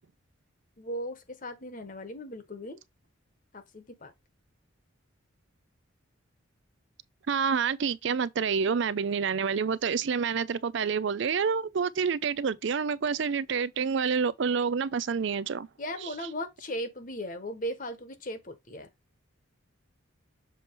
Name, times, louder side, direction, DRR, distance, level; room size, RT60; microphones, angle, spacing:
voice 1, 0.8-2.8 3.5-4.1 15.8-18.9, equal, 40° left, 1.1 m, -37 dB
voice 2, 7.3-15.7, right 6 dB, 60° right, 0.4 m, -28 dB
7.0 x 3.0 x 4.6 m
head